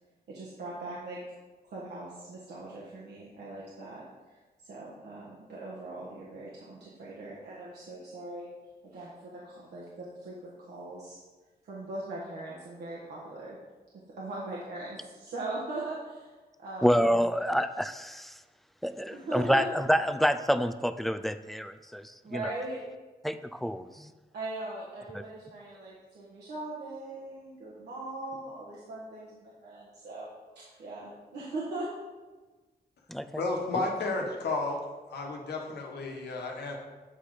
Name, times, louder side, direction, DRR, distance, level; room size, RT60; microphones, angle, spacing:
voice 1, 0.3-1.2 1.6-8.5 8.8-11.2 11.6-13.6 14.2-16.9 19.1-19.6 22.2-22.8 24.3-31.9, right 2 dB, 85° right, -6 dB, 1.4 m, -40 dB
voice 2, 16.8-18.4 18.8-22.5 23.2-24.1 33.1-33.4, equal, ahead, 11 dB, 0.4 m, -28 dB
voice 3, 33.4-34.8 35.1-36.8, left 3 dB, 85° left, 1 dB, 1.3 m, -32 dB
8.3 x 4.2 x 4.9 m, 1.3 s
cardioid pair, 80°, 17 cm